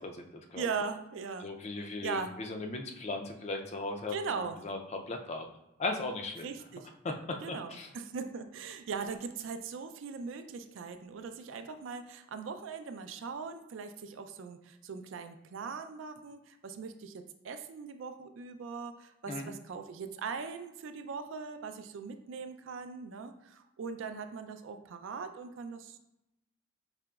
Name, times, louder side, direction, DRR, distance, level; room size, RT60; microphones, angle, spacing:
voice 1, 0.0-0.7 1.4-5.5 5.8-6.5 7.0-7.9 19.3-19.5, left 2 dB, 35° left, 3 dB, 0.4 m, -37 dB
voice 2, 0.6-1.5 1.8-2.4 4.1-4.6 6.4-6.9 7.4-26.0, right 5 dB, 70° right, 8 dB, 0.3 m, -40 dB
4.9 x 2.8 x 2.3 m, 0.90 s
head